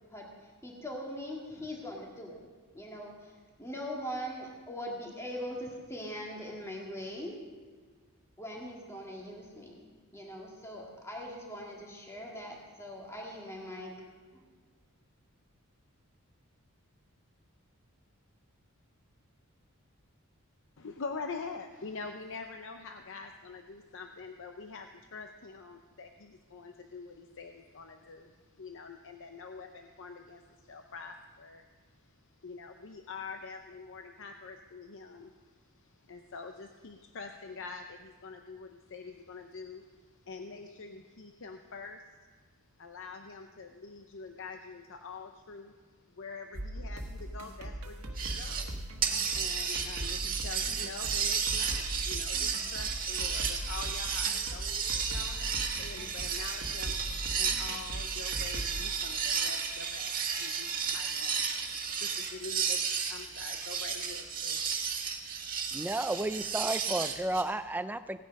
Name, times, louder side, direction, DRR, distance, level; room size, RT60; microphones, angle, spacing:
voice 1, 0.6-2.4 2.7-3.3 3.6-7.4 8.4-14.0, equal, 15° left, -2 dB, 1.9 m, -41 dB
voice 2, 20.8-42.0 42.8-49.0 49.3-64.7, left 4 dB, 60° left, 5 dB, 0.7 m, -45 dB
sound 1, 46.5-58.8, right 1 dB, 90° right, 1.3 m, -40 dB
sound 2, 48.2-48.7 49.0-67.4, right 6 dB, 40° right, 1.7 m, -33 dB
voice 3, 65.5-68.2, right 2 dB, 10° right, 11 dB, 0.4 m, -33 dB
16.5 x 9.8 x 5.3 m, 1.5 s
head